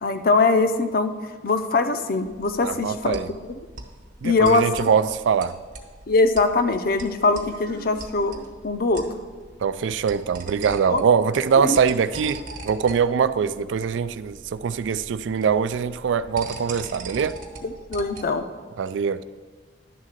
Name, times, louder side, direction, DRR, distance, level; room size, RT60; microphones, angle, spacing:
voice 1, 0.0-1.1 1.4-3.4 4.2-4.9 6.1-8.4 8.6-9.0 10.9-11.0 11.6-11.8 17.6-18.4, left 3 dB, 55° left, 0.5 m, -22 dB
sound 1, 2.3-18.4, right 3 dB, 50° right, 1.1 m, -42 dB
voice 2, 2.6-3.3 4.2-5.6 9.6-17.4 18.8-19.2, right 6 dB, 80° right, 0.3 m, -23 dB
11.0 x 3.7 x 6.5 m
head